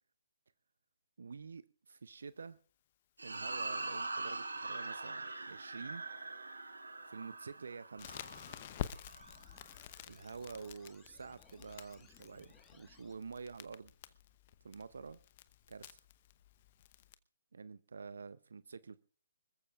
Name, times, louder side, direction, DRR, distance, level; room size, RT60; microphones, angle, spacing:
voice 1, 1.2-2.6 3.2-6.0 7.0-8.1 10.1-13.9 14.6-15.2 15.7-16.0 17.5-19.0, right 5 dB, 70° right, 0.6 m, -48 dB
sound 1, 3.2-9.7, right 3 dB, 85° right, 1.7 m, -43 dB
Crackle, 8.0-17.1, left 11 dB, 40° left, 0.8 m, -49 dB
sound 2, 8.1-13.1, left 6 dB, 15° left, 1.5 m, -65 dB
25.5 x 14.5 x 2.4 m
figure-of-eight pair, 145°, 0 cm